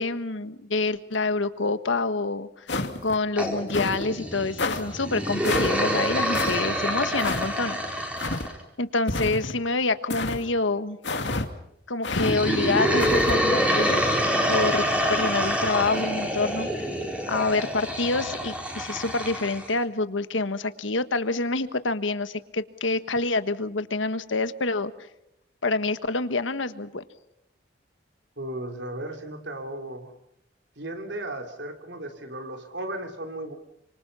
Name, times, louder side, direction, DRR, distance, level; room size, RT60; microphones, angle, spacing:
voice 1, 0.0-2.7 3.0-7.8 8.8-11.0 11.9-14.1 14.5-14.8 15.1-16.7 17.3-24.9 25.6-27.0, left 3 dB, 90° left, 12 dB, 1.4 m, -27 dB
sound 1, 2.7-3.2 3.7-4.0 4.6-4.8 5.4-5.8 6.3-6.6 7.2-7.5 8.2-8.5 9.1-9.6 10.1-10.4 11.0-11.5 12.0-12.3 13.0-13.4, left 3 dB, 70° left, 2.4 m, -28 dB
sound 2, 3.4-8.6 12.1-19.7, equal, 5° right, 4.3 m, -26 dB
voice 2, 28.4-30.1 30.8-33.5, right 1 dB, 70° right, 5 dB, 3.7 m, -35 dB
29.0 x 26.0 x 5.7 m, 0.78 s
head